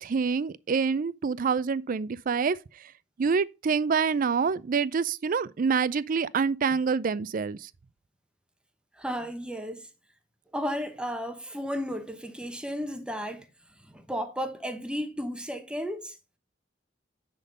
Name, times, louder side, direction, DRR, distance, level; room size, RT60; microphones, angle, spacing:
voice 1, 0.0-2.6 3.2-7.7, right 5 dB, 45° right, 0.4 m, -26 dB
voice 2, 9.0-9.9 10.5-13.5 13.9-16.2, equal, 5° right, 0.9 m, -33 dB
10.0 x 3.8 x 5.2 m
head